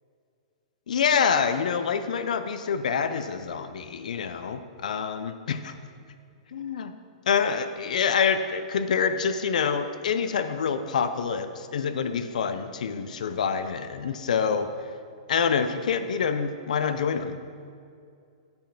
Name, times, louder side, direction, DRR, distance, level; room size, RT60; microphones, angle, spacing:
voice 1, 0.9-5.7 6.5-6.9 7.3-14.7 15.3-17.4, left 6 dB, 80° left, 9 dB, 0.6 m, -26 dB
9.1 x 5.3 x 5.9 m, 2.3 s
hypercardioid pair, 160°, 4 cm